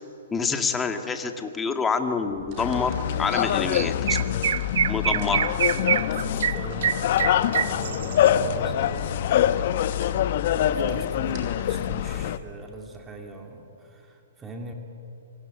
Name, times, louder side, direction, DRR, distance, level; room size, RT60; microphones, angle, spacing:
voice 1, 0.3-4.2 4.9-5.5, left 5 dB, 10° left, 5 dB, 2.1 m, -27 dB
sound 1, 2.3-12.5, right 3 dB, 35° right, 6.1 m, -48 dB
sound 2, 2.6-12.4, left 10 dB, 50° left, 1.1 m, -25 dB
Chirp tweet, 3.3-3.4 3.7-8.3, right 9 dB, 65° right, 0.9 m, -26 dB
voice 2, 5.0-5.5 6.1-14.7, right 2 dB, 15° right, 2 dB, 2.8 m, -41 dB
25.5 x 24.0 x 9.6 m, 2.8 s
hypercardioid pair, 140°, 0 cm